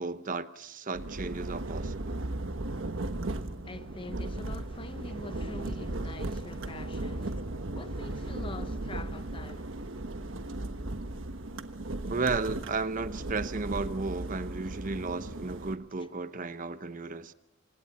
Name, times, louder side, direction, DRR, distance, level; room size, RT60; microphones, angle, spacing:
voice 1, 0.0-2.2 12.1-17.3, right 3 dB, 45° right, 0.8 m, -34 dB
sound 1, 0.9-15.8, right 2 dB, 90° right, 1.3 m, -36 dB
voice 2, 3.6-7.5 7.7-9.7 16.0-16.1, left 2 dB, 25° left, 0.8 m, -45 dB
28.0 x 26.0 x 4.2 m
head